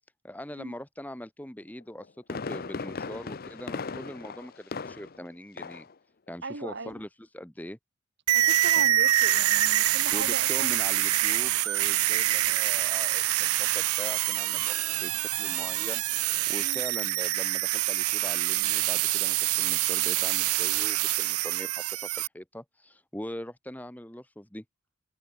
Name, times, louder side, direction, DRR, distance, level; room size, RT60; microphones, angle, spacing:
voice 1, 0.2-5.9 6.3-7.8 8.7-8.9 10.1-16.0 16.5-24.6, left 1 dB, 5° left, 1.2 m, -42 dB
Fireworks, 1.8-5.3 5.6-5.9 6.3-6.4, left 4 dB, 40° left, 0.6 m, -37 dB
voice 2, 6.4-7.0 8.3-10.8 16.6-16.8, right 3 dB, 50° right, 1.7 m, -38 dB
sound 1, 8.3-22.3, right 15 dB, 85° right, 0.6 m, -26 dB
head